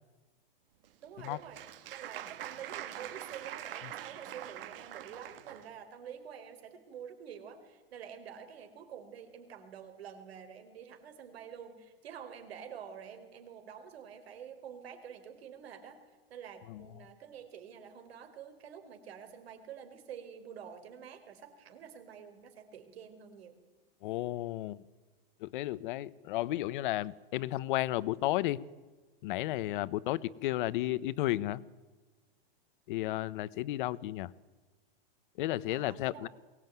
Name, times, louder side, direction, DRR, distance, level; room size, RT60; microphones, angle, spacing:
Applause, 0.8-5.7, right 12 dB, 65° right, 2.0 m, -44 dB
voice 1, 1.0-1.6 1.9-16.0 16.3-23.6 35.7-36.3, right 8 dB, 85° right, 7 dB, 4.5 m, -48 dB
voice 2, 24.0-24.8 25.4-28.6 29.2-31.6 32.9-34.3 35.4-36.3, left 16 dB, 55° left, 18 dB, 1.0 m, -33 dB
22.5 x 19.0 x 9.4 m, 1.3 s
supercardioid pair, 155°, 30 cm